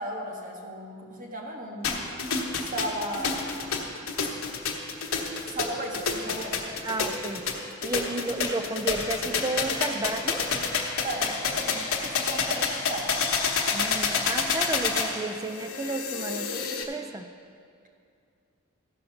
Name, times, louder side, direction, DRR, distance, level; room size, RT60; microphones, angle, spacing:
voice 1, 0.0-2.0 2.7-3.5 5.5-6.7 11.0-13.2, right 1 dB, 40° right, 0 dB, 1.5 m, -35 dB
sound 1, 1.8-16.8, left 5 dB, 85° left, 1.2 m, -28 dB
voice 2, 6.8-7.4 7.8-10.5 13.7-17.3, right 2 dB, 15° right, 8 dB, 0.4 m, -32 dB
14.5 x 5.3 x 5.7 m, 2.4 s
head